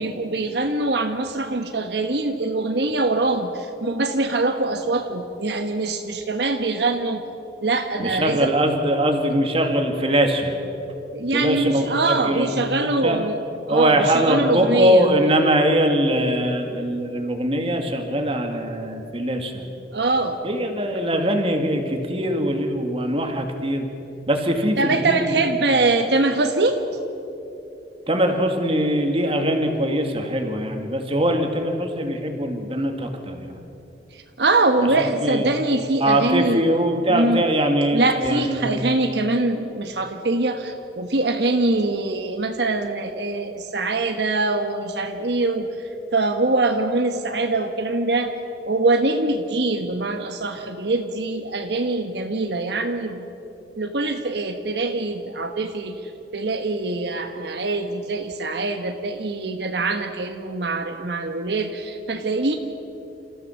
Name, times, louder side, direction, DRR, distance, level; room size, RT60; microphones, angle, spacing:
voice 1, 0.0-7.2 7.6-8.5 11.1-13.4 13.7-15.1 19.9-20.4 24.8-26.8 34.1-36.6 37.1-37.4 37.9-48.3 48.7-53.3 53.8-62.5, right 2 dB, 70° right, 5 dB, 1.2 m, -23 dB
voice 2, 8.0-10.5 11.3-13.2 13.7-19.6 20.4-23.9 24.3-25.3 28.1-33.6 35.0-35.5 36.0-39.0, right 1 dB, 30° right, 4 dB, 2.0 m, -22 dB
28.5 x 14.5 x 7.1 m, 2.9 s
head